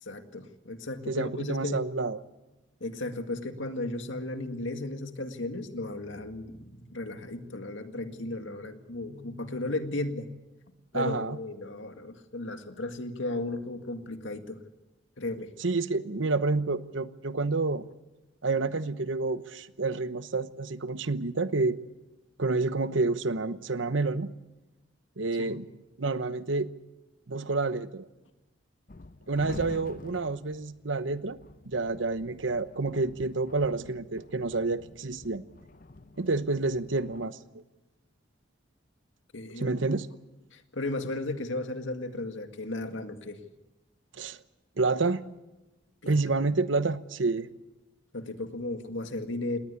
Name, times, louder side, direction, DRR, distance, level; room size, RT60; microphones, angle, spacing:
voice 1, 0.0-1.8 2.8-10.4 10.9-14.6 15.2-15.5 25.4-25.6 39.3-39.7 40.5-43.4 46.0-46.2 48.1-49.6, left 2 dB, 85° left, 7 dB, 2.0 m, -35 dB
voice 2, 1.1-2.2 10.9-11.4 15.6-17.8 18.4-21.8 22.4-24.3 25.2-25.6 26.0-26.7 27.3-28.1 29.3-31.4 31.7-35.4 36.2-37.4 39.6-40.1 44.2-44.4 44.8-45.2 46.1-47.5, right 3 dB, 85° right, 13 dB, 1.0 m, -29 dB
sound 1, 28.9-37.3, left 2 dB, 45° left, 0.7 m, -48 dB
20.0 x 18.5 x 8.3 m, 1.0 s
head